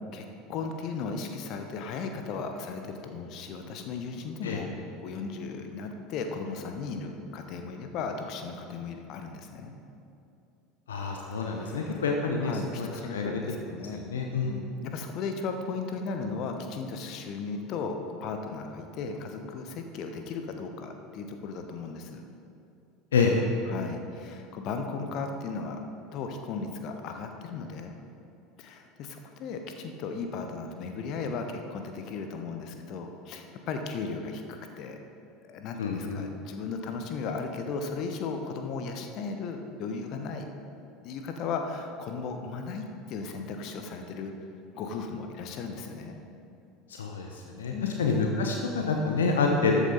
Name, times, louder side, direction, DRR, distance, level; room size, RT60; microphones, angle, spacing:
voice 1, 0.0-4.7 5.0-9.7 11.5-12.0 12.4-14.0 14.4-22.2 23.7-25.8 26.1-28.0 28.6-35.0 35.4-40.5 41.0-44.3 44.7-46.2 47.7-48.0, left 4 dB, 45° left, 5 dB, 1.1 m, -36 dB
voice 2, 10.9-13.3 13.9-14.6 23.1-23.3 35.8-36.3 46.9-49.8, left 4 dB, 70° left, 2 dB, 0.8 m, -28 dB
13.0 x 8.3 x 4.1 m, 2.6 s
figure-of-eight pair, 70°, 0 cm